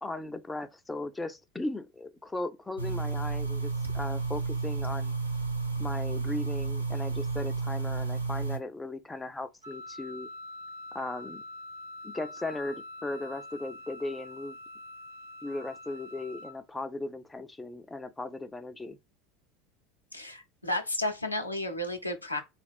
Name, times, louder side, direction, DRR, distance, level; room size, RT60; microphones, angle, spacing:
voice 1, 0.0-5.1 5.8-10.3 10.9-11.4 12.0-14.6 15.4-19.0, left 2 dB, 10° left, 0.4 m, -37 dB
sound 1, 2.8-8.6, right 4 dB, 90° right, 0.6 m, -31 dB
Wind instrument woodwind instrument, 9.6-16.5, left 2 dB, 65° right, 0.9 m, -45 dB
voice 2, 20.1-22.4, left 1 dB, 90° left, 0.6 m, -32 dB
4.1 x 2.3 x 3.4 m
figure-of-eight pair, 75°, 0 cm